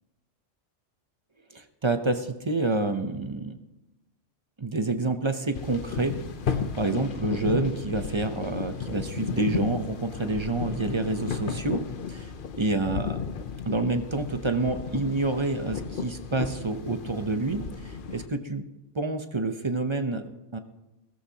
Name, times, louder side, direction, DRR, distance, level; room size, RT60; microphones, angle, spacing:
voice 1, 1.5-3.6 4.6-6.1 6.5-11.8 12.6-13.2 13.7-18.6 18.9-20.6, right 3 dB, 30° right, 8 dB, 0.7 m, -28 dB
sound 1, 5.5-18.3, left 6 dB, 50° left, 0.9 m, -34 dB
16.5 x 14.0 x 2.9 m, 1.0 s
omnidirectional pair, 1.2 m